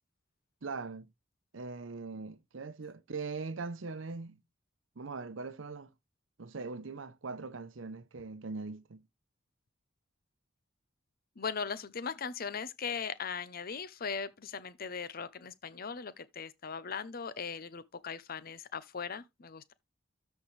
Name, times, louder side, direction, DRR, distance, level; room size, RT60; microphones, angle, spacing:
voice 1, 0.6-1.1 1.5-4.4 5.0-5.9 6.4-9.0, right 4 dB, 75° right, 0.7 m, -41 dB
voice 2, 11.4-19.7, left 6 dB, 50° left, 0.7 m, -39 dB
13.0 x 4.5 x 3.2 m
head